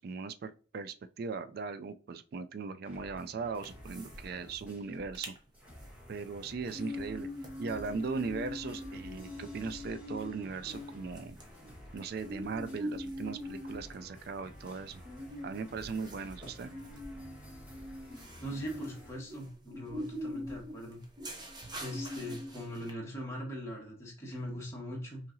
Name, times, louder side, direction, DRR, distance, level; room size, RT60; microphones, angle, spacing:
voice 1, 0.0-5.3 6.1-7.3 7.6-11.4 11.9-15.0 15.4-16.7, right 4 dB, 50° right, 0.3 m, -38 dB
sound 1, 2.8-5.2 5.5-19.1, equal, 5° right, 1.1 m, -52 dB
sound 2, 3.6-4.3 4.5-4.6 5.0-5.4 5.8-22.9, left 1 dB, 20° right, 0.7 m, -43 dB
voice 2, 18.4-21.0 21.3-21.4 21.8-25.2, equal, 15° left, 1.2 m, -41 dB
5.5 x 2.8 x 2.6 m
head